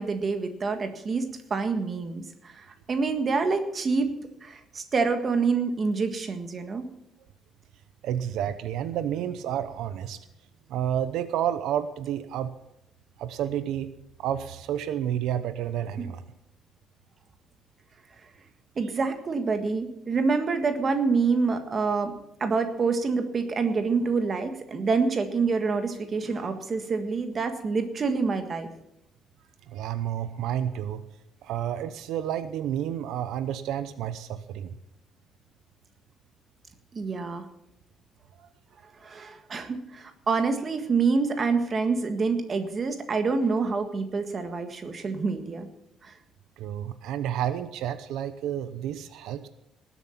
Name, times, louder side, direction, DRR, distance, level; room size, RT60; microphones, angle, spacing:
voice 1, 0.0-6.8 18.7-22.1 22.4-28.7 36.9-37.4 39.0-45.7 46.0-46.1, right 4 dB, 30° right, 6 dB, 1.6 m, -27 dB
voice 2, 8.0-10.2 10.7-12.5 13.2-13.9 14.2-16.2 29.7-31.1 31.4-34.7 38.4-38.5 46.6-49.5, right 10 dB, 75° right, 11 dB, 0.8 m, -30 dB
19.0 x 8.2 x 5.8 m, 0.85 s
cardioid pair, 160°, 0 cm